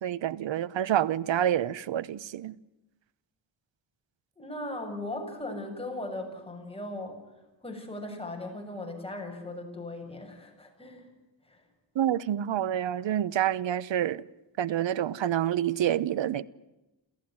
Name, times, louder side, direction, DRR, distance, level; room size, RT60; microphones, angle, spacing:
voice 1, 0.0-2.6 11.9-14.2 14.6-16.4, right 11 dB, 75° right, 1.0 m, -28 dB
voice 2, 4.4-7.2 7.6-11.1 11.5-11.6, left 2 dB, 10° left, 7.2 m, -38 dB
28.5 x 14.5 x 9.6 m
cardioid pair, 90°, 45 cm